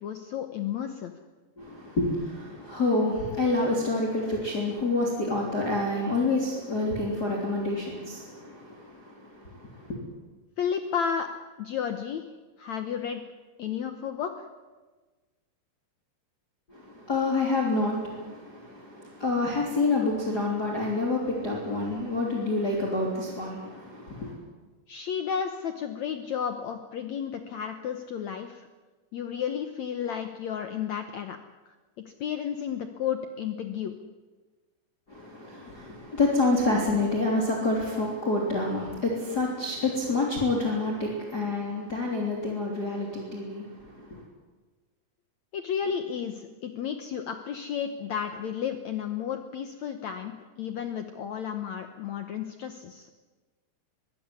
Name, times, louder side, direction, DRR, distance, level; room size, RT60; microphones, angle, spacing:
voice 1, 0.0-1.1 10.6-11.3 11.6-12.3 12.6-13.2 13.6-14.5 24.9-28.7 29.1-31.4 32.1-33.9 45.5-53.1, left 8 dB, 70° left, 7 dB, 1.7 m, -32 dB
voice 2, 1.6-10.0 16.7-24.3 35.1-44.2, left 2 dB, 25° left, -2 dB, 3.5 m, -28 dB
22.5 x 16.5 x 9.7 m, 1.3 s
omnidirectional pair, 4.6 m